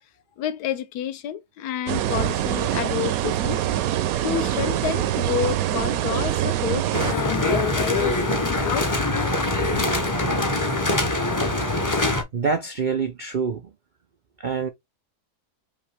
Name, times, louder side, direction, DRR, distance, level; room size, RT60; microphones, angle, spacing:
voice 1, 0.4-3.6 4.2-9.1 9.7-9.8, left 10 dB, 80° left, 1.2 m, -29 dB
sound 1, 1.9-7.1, right 12 dB, 70° right, 0.9 m, -24 dB
sound 2, 6.9-12.2, left 2 dB, 25° left, 0.4 m, -23 dB
voice 2, 12.3-13.6 14.4-14.7, right 5 dB, 85° right, 0.4 m, -25 dB
5.4 x 2.8 x 3.3 m
omnidirectional pair, 1.7 m